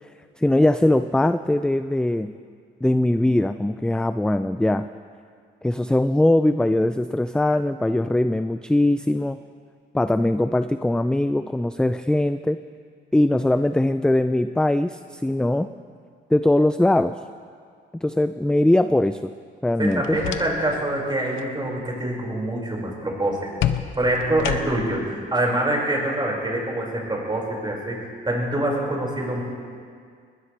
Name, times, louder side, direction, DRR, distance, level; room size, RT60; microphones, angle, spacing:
voice 1, 0.4-2.3 2.8-4.9 5.6-9.4 9.9-12.6 13.1-15.7 16.3-17.2 18.0-19.3 19.6-20.2, left 1 dB, 5° left, 11 dB, 0.4 m, -21 dB
sound 1, 19.8-20.8 21.2-21.5 23.6-25.0, left 11 dB, 85° left, 0.8 m, -29 dB
voice 2, 19.8-23.7 24.0-28.0 28.3-29.4, right 1 dB, 20° right, -3 dB, 5.3 m, -25 dB
20.5 x 19.5 x 3.3 m, 2.1 s
cardioid pair, 90°, 20 cm